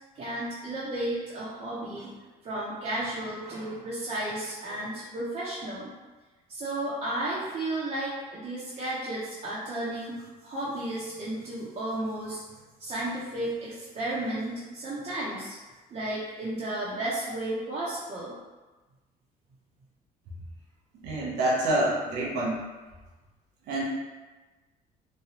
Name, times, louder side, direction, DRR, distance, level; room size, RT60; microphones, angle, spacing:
voice 1, 0.1-2.1 2.4-5.9 6.5-12.4 12.8-15.5 15.9-18.4, right 1 dB, 40° right, -9 dB, 0.7 m, -33 dB
voice 2, 21.0-22.6 23.7-23.8, right 1 dB, 85° right, -5 dB, 0.7 m, -27 dB
3.1 x 2.3 x 2.8 m, 1.2 s
cardioid pair, 110°, 17 cm